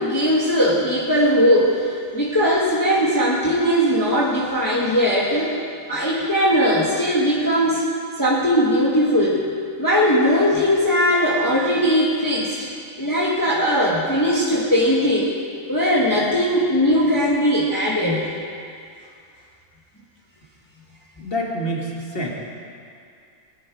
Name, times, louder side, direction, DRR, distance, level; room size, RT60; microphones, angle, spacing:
voice 1, 0.0-1.8 2.1-5.5 5.9-7.8 8.2-9.4 9.8-12.7 13.0-15.3 15.7-18.3, equal, 15° left, -6 dB, 1.6 m, -19 dB
voice 2, 21.2-22.3, equal, 45° left, -2 dB, 2.2 m, -27 dB
20.0 x 9.6 x 4.8 m, 2.4 s
omnidirectional pair, 1.4 m